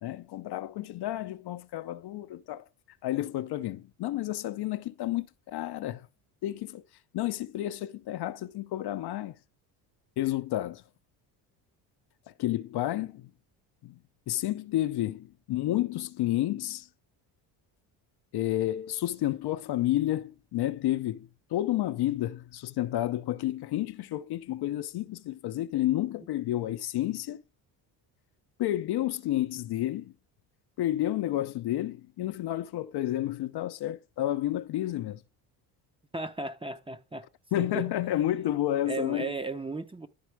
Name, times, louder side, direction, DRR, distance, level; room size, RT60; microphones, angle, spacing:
voice 1, 0.0-2.6 3.0-6.1 6.4-6.8 7.1-9.4 10.2-10.8 12.3-13.3 13.8-14.0 14.3-16.9 18.3-27.4 28.6-30.1 30.8-35.2 37.5-39.3, left 14 dB, 55° left, 0.6 m, -30 dB
voice 2, 36.1-37.3 37.6-37.9 38.9-40.1, right 3 dB, 10° right, 0.7 m, -35 dB
11.5 x 4.1 x 4.6 m
supercardioid pair, 85°, 48 cm